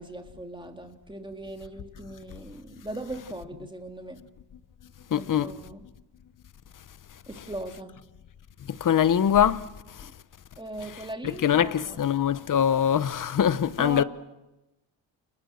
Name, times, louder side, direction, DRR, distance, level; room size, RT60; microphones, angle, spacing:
voice 1, 0.0-4.2 5.1-5.8 7.3-8.0 10.0-10.1 10.6-12.0 13.8-14.0, right 1 dB, 10° right, 2.5 m, -39 dB
voice 2, 5.1-5.5 8.8-9.6 11.4-14.0, left 9 dB, 40° left, 1.0 m, -22 dB
30.0 x 29.5 x 6.6 m
cardioid pair, 125°, 48 cm